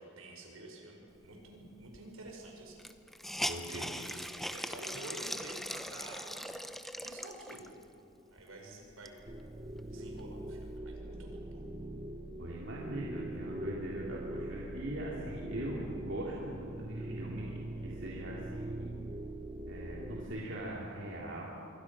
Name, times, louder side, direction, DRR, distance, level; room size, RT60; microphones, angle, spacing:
voice 1, 0.0-2.8 3.7-7.7 8.3-9.2 9.8-11.6, right 1 dB, 80° right, 1 dB, 5.6 m, -49 dB
Hiss, 1.9-2.0 2.3-2.4 2.8-7.8 8.4-8.5 8.9-10.2, equal, ahead, 0.7 m, -40 dB
voice 2, 3.5-3.8 12.4-18.9 19.7-21.4, right 1 dB, 60° right, -4 dB, 3.1 m, -41 dB
sound 1, 9.3-20.3, right 1 dB, 20° right, 1.1 m, -42 dB
27.0 x 24.0 x 6.2 m, 2.7 s
head